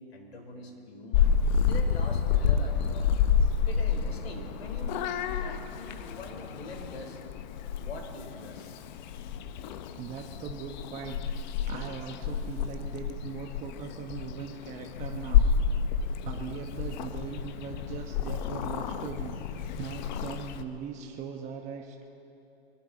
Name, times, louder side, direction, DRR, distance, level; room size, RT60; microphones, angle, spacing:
voice 1, 0.0-1.4 1.7-3.3 3.7-5.0 5.4-7.2 7.8-8.8, left 2 dB, 85° left, 2 dB, 3.9 m, -44 dB
Purr / Meow, 1.1-20.6, left 7 dB, 45° left, 0.9 m, -29 dB
voice 2, 10.0-11.2 11.7-15.5 16.2-22.0, right 6 dB, 25° right, 2 dB, 1.0 m, -40 dB
23.0 x 15.0 x 4.0 m, 2.7 s
hypercardioid pair, 130°, 30 cm